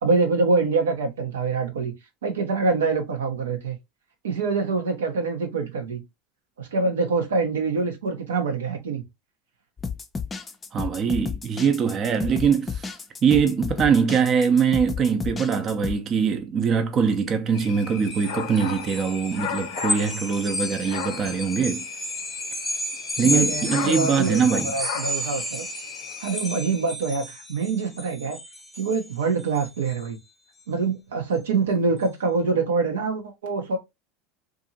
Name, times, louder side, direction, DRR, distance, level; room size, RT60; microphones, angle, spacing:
voice 1, 0.0-1.9 2.2-3.8 4.2-6.0 6.6-9.0 23.2-25.7 26.2-28.4 28.8-30.2 30.7-33.8, right 4 dB, 90° right, 0.7 m, -25 dB
sound 1, 9.8-16.0, left 5 dB, 20° left, 0.4 m, -32 dB
voice 2, 10.7-13.0 13.2-21.8 23.2-24.7, right 6 dB, 40° right, 0.5 m, -22 dB
sound 2, 17.5-27.0, left 8 dB, 75° left, 0.5 m, -36 dB
sound 3, 18.0-30.1, left 1 dB, 5° left, 0.8 m, -32 dB
2.7 x 2.5 x 2.7 m
hypercardioid pair, 90°, 0 cm